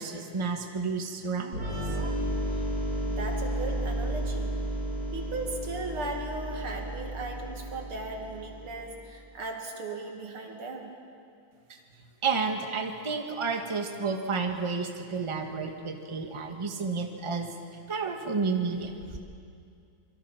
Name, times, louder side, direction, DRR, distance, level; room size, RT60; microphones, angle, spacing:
voice 1, 0.0-1.6 2.0-2.1 12.2-17.5 17.9-19.2, right 4 dB, 15° right, 4 dB, 1.3 m, -31 dB
sound 1, 1.5-9.1, right 1 dB, 45° right, 5.1 m, -33 dB
voice 2, 3.0-4.5 5.1-10.9, right 3 dB, 85° right, 2 dB, 3.2 m, -37 dB
26.0 x 23.0 x 5.9 m, 2.4 s
omnidirectional pair, 2.3 m